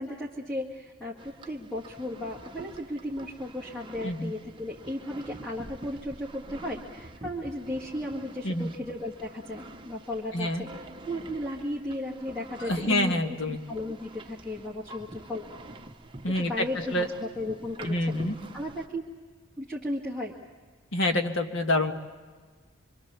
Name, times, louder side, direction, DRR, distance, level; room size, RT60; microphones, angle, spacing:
voice 1, 0.0-15.5 16.3-18.2 18.5-19.0 19.6-20.4, left 1 dB, 5° left, -4 dB, 2.0 m, -35 dB
sound 1, 1.2-18.9, right 2 dB, 25° right, 1.0 m, -46 dB
voice 2, 10.3-10.6 12.6-13.6 16.2-17.1 17.8-18.4 20.9-21.9, left 1 dB, 60° left, 5 dB, 1.6 m, -27 dB
26.0 x 25.5 x 7.1 m, 1.4 s
head